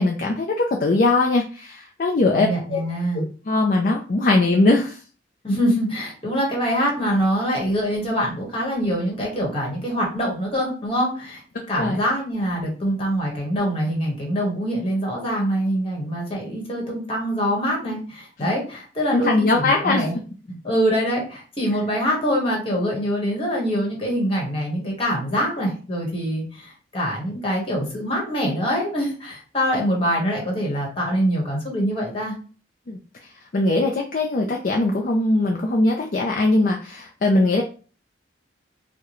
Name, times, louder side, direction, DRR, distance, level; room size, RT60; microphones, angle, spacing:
voice 1, 0.0-2.8 3.1-5.0 11.8-12.0 19.1-20.1 32.9-33.0 33.5-37.6, left 2 dB, 45° left, 1 dB, 0.4 m, -20 dB
voice 2, 2.3-3.2 5.4-11.4 11.7-20.1 20.5-32.4, equal, 30° left, -2 dB, 1.3 m, -24 dB
4.6 x 2.1 x 3.0 m, 0.38 s
head